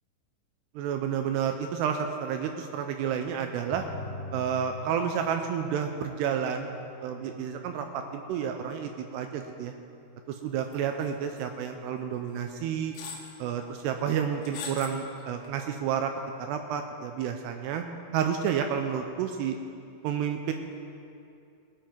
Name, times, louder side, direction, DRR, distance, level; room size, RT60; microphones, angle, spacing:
voice 1, 0.8-3.8 4.3-6.7 7.0-9.7 10.3-12.9 13.4-16.1 16.5-17.8 18.1-19.6 20.0-20.5, right 8 dB, 85° right, 5 dB, 2.4 m, -30 dB
sound 1, 3.7-14.7, equal, 45° left, 4.3 m, -46 dB
sound 2, 10.7-11.1 11.4-11.5 12.4-12.5 13.0-13.3 14.4-15.0 15.4-15.5, left 5 dB, 75° left, 3.6 m, -39 dB
19.0 x 9.1 x 4.5 m, 2.5 s
omnidirectional pair, 5.4 m